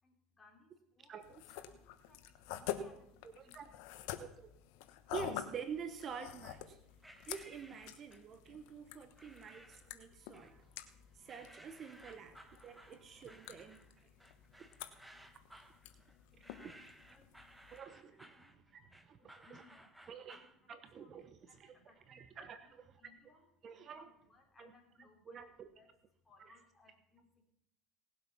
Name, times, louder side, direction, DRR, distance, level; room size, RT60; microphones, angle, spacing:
voice 1, 0.0-3.9 15.9-17.3 18.0-27.4, left 3 dB, 15° left, 1 dB, 3.8 m, -67 dB
voice 2, 1.1-1.4 3.2-3.7 4.2-4.5 5.1-6.8 7.3-10.7 11.1-14.1 14.6-14.7 16.4-16.7 17.7-18.4 18.7-19.6 20.1-20.4 20.7-21.7 22.1-22.7 23.6-24.1 24.6-24.7 25.3-25.5, right 6 dB, 40° right, 10 dB, 1.1 m, -48 dB
sound 1, 1.2-17.8, left 11 dB, 75° left, 1.1 m, -49 dB
sound 2, 7.0-8.4 9.2-9.9 10.3-10.9 11.3-20.6, right 1 dB, 5° right, 1.3 m, -59 dB
18.5 x 7.9 x 5.7 m, 0.79 s
supercardioid pair, 110°, 0 cm